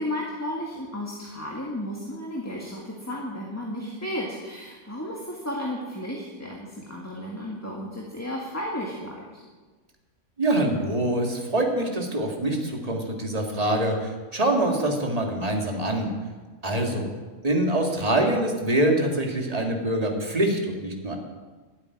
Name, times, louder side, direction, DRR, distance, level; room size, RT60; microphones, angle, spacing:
voice 1, 0.0-9.4, left 1 dB, 10° left, -2 dB, 1.8 m, -33 dB
voice 2, 10.4-16.1 16.6-17.1 17.4-21.2, right 1 dB, 25° right, 2 dB, 2.2 m, -24 dB
12.5 x 8.8 x 9.9 m, 1.3 s
omnidirectional pair, 1.4 m